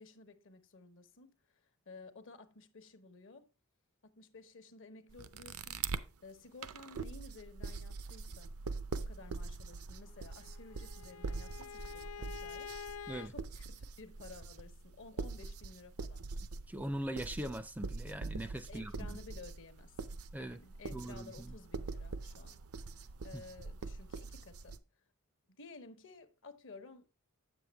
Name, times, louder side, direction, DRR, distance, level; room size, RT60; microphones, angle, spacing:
voice 1, 0.0-3.5 4.0-8.5 9.0-16.3 18.7-24.8 25.5-27.1, left 3 dB, 65° left, 0.9 m, -55 dB
sound 1, 5.1-6.1 6.6-24.8, right 4 dB, 75° right, 0.5 m, -43 dB
Bowed string instrument, 10.2-13.3, left 7 dB, 80° left, 0.4 m, -47 dB
voice 2, 16.7-18.9 20.3-20.6 20.9-21.5 23.3-23.4, right 1 dB, 5° right, 0.4 m, -40 dB
8.0 x 7.1 x 3.4 m
head